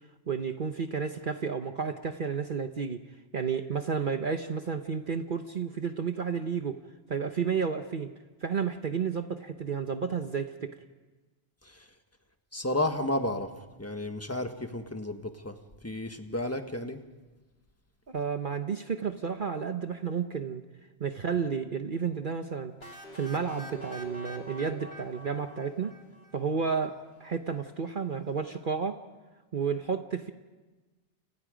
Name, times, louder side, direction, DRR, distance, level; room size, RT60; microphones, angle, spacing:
voice 1, 0.3-3.0 3.3-6.8 7.1-8.1 8.4-10.7 18.1-20.6 21.0-22.7 23.1-25.9 26.3-29.0 29.5-30.3, right 6 dB, 45° right, 7 dB, 1.1 m, -31 dB
voice 2, 12.5-13.5 13.8-15.6 15.8-17.0, left 1 dB, 15° left, 6 dB, 1.5 m, -32 dB
sound 1, 22.8-26.6, equal, 60° left, 3.0 m, -45 dB
29.0 x 29.0 x 5.1 m, 1.2 s
omnidirectional pair, 1.2 m